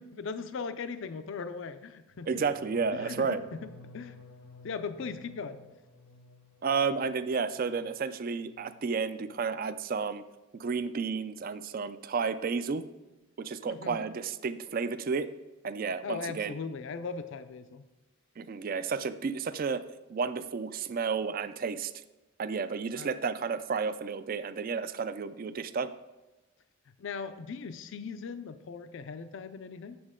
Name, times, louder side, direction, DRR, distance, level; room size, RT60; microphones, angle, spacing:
voice 1, 0.0-2.4 2.9-3.6 3.9-4.2 4.6-5.6 13.7-14.0 16.0-17.8 22.9-23.1 26.9-30.0, left 5 dB, 65° left, 11 dB, 0.4 m, -39 dB
sound 1, 2.1-8.0 8.3-8.8 9.1-9.5, left 2 dB, 90° left, 1.0 m, -54 dB
voice 2, 2.3-3.4 6.6-10.2 10.6-12.8 13.4-15.3 15.6-16.5 18.4-19.8 20.1-21.9 22.4-25.9, right 5 dB, 45° right, 12 dB, 0.4 m, -32 dB
8.5 x 7.1 x 3.7 m, 1.1 s
head